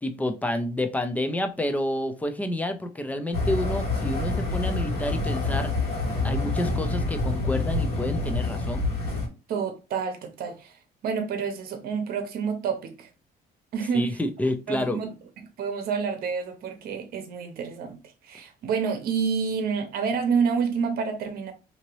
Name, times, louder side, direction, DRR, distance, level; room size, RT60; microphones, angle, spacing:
voice 1, 0.0-5.7 6.2-8.9 13.9-15.0, left 1 dB, 10° left, 0.5 m, -29 dB
sound 1, 3.3-9.3, left 3 dB, 65° left, 1.3 m, -27 dB
voice 2, 9.5-10.7 11.0-13.1 13.7-14.2 14.7-15.1 15.6-18.0 18.2-21.5, right 6 dB, 65° right, 0.8 m, -28 dB
2.8 x 2.7 x 3.0 m
cardioid pair, 110°, 17 cm